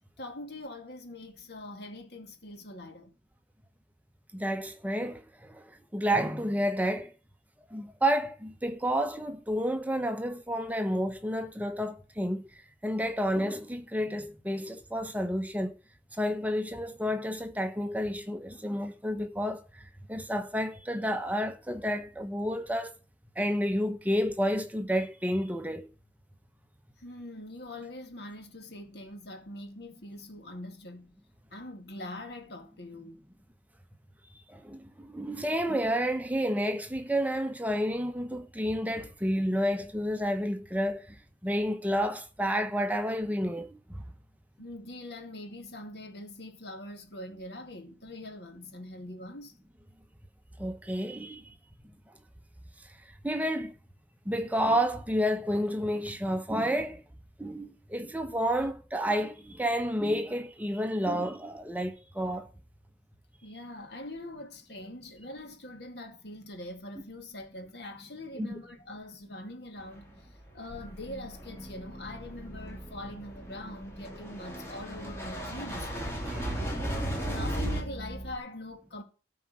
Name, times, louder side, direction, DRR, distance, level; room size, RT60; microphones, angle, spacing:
voice 1, 0.2-3.1 27.0-31.2 31.5-33.2 44.6-49.5 63.4-70.3 70.5-75.9 77.0-79.0, left 1 dB, 60° left, 2.3 m, -43 dB
voice 2, 4.3-5.7 5.9-7.1 7.7-12.5 12.8-15.7 16.2-22.9 23.4-25.9 34.5-41.2 41.4-44.0 50.6-51.5 53.2-53.7 54.3-57.0 57.4-62.5 68.4-68.5 76.2-76.7, equal, 10° right, 0.8 m, -30 dB
sound 1, 69.9-70.0 70.5-70.8 71.1-77.8, equal, 15° left, 3.1 m, -35 dB
sound 2, 70.7-78.4, right 1 dB, 30° left, 1.9 m, -44 dB
13.5 x 4.8 x 7.5 m
head